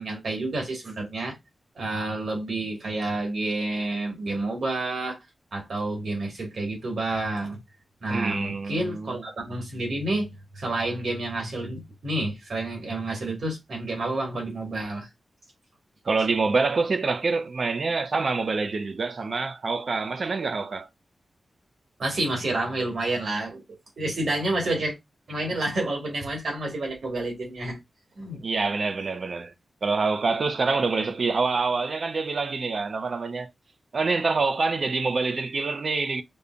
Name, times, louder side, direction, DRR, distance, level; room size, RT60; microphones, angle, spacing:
voice 1, 0.0-1.4 1.8-5.2 5.5-7.6 8.0-15.1 22.0-23.6 24.0-25.0 25.3-27.8 28.2-28.4, right 2 dB, 75° right, 1.9 m, -29 dB
voice 2, 8.1-9.2 16.0-20.9 28.4-29.5 29.8-33.5 33.9-36.2, right 4 dB, 60° right, 0.5 m, -26 dB
5.2 x 2.2 x 2.4 m
cardioid pair, 65°, 0 cm